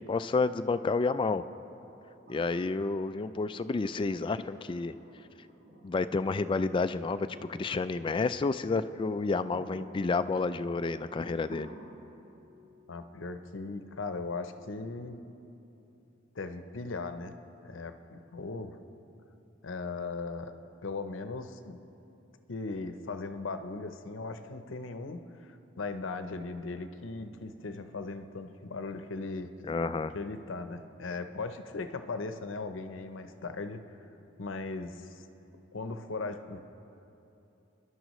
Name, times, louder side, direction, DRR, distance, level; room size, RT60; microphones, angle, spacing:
voice 1, 0.1-1.4 2.3-4.9 5.8-11.7 29.6-30.1, left 3 dB, 25° left, 11 dB, 0.3 m, -30 dB
sound 1, 2.3-16.2 18.0-18.1, equal, 80° right, 2.3 m, -55 dB
voice 2, 12.9-15.2 16.3-17.3 17.6-18.8 19.6-20.5 20.8-21.8 22.5-29.5 30.1-33.8 34.4-35.2 35.7-36.6, left 3 dB, 85° left, 8 dB, 0.7 m, -38 dB
26.5 x 11.0 x 3.1 m, 2.9 s
head